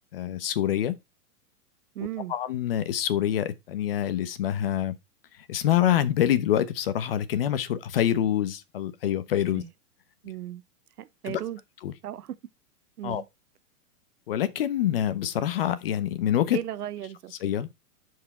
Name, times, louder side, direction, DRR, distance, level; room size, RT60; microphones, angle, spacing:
voice 1, 0.1-1.0 2.3-5.0 5.5-9.6 11.3-11.4 11.8-11.9 13.0-13.2 14.3-16.6 17.4-17.7, left 11 dB, 40° left, 0.9 m, -26 dB
voice 2, 1.9-2.3 9.5-9.7 10.2-10.6 11.0-11.6 12.0-12.4 13.0-13.2 16.5-17.3, right 12 dB, 90° right, 0.9 m, -35 dB
10.5 x 4.8 x 4.3 m
hypercardioid pair, 170°, 45 cm